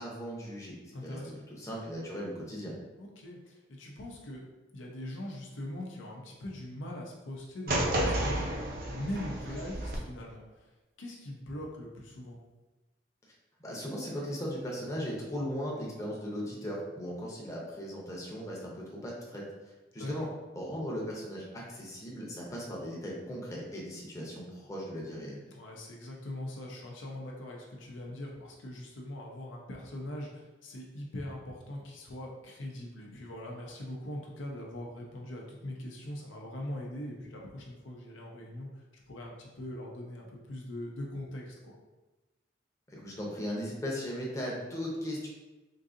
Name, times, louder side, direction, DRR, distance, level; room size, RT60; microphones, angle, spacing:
voice 1, 0.0-0.7 1.0-1.2 1.5-2.7 13.6-20.3 20.5-25.4 42.9-45.3, equal, 15° left, -3 dB, 0.7 m, -38 dB
voice 2, 0.9-1.4 3.0-4.4 4.7-10.7 11.0-12.4 20.0-20.3 25.5-41.7, left 1 dB, 90° left, -1 dB, 0.6 m, -41 dB
sound 1, 7.7-10.0, right 1 dB, 50° right, 0.6 m, -31 dB
3.8 x 2.7 x 2.5 m, 1.1 s
head